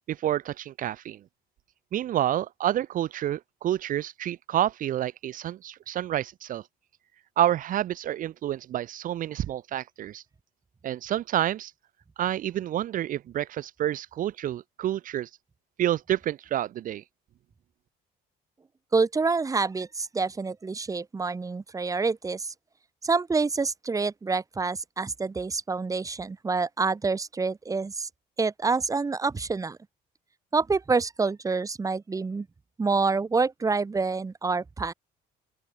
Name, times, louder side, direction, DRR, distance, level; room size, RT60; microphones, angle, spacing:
voice 1, 0.1-1.2 1.9-6.6 7.4-10.2 10.8-11.7 12.2-15.3 15.8-17.0, right 12 dB, 55° right, 0.6 m, -28 dB
voice 2, 18.9-22.5 23.0-28.1 28.4-29.8 30.5-32.5 32.8-34.9, right 4 dB, 20° right, 1.0 m, -27 dB
open air
cardioid pair, 110°, 17 cm